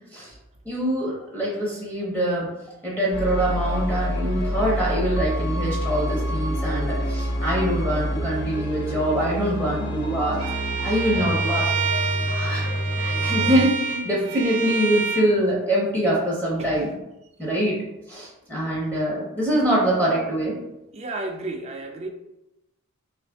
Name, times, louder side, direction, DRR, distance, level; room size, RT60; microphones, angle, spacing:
voice 1, 0.6-2.5 2.8-10.4 10.8-11.7 12.3-12.7 13.0-16.9 17.4-17.8 18.1-20.6, right 1 dB, 5° left, -4 dB, 0.7 m, -24 dB
sound 1, 3.1-13.7, equal, 50° left, 0.5 m, -27 dB
Bowed string instrument, 10.4-15.3, right 6 dB, 75° right, 0.6 m, -28 dB
voice 2, 20.9-22.1, right 2 dB, 30° right, 3 dB, 0.3 m, -32 dB
3.2 x 2.5 x 3.4 m, 0.92 s
head